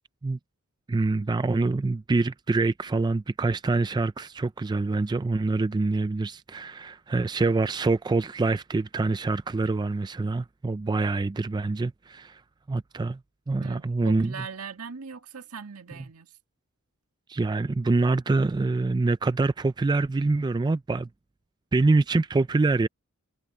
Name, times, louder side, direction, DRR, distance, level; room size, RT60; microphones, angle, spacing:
voice 1, 0.9-12.4 12.7-13.2 13.5-14.5 17.3-21.1 21.7-22.9, right 3 dB, 20° right, 0.3 m, -25 dB
voice 2, 13.6-16.3, right 6 dB, 75° right, 1.8 m, -40 dB
head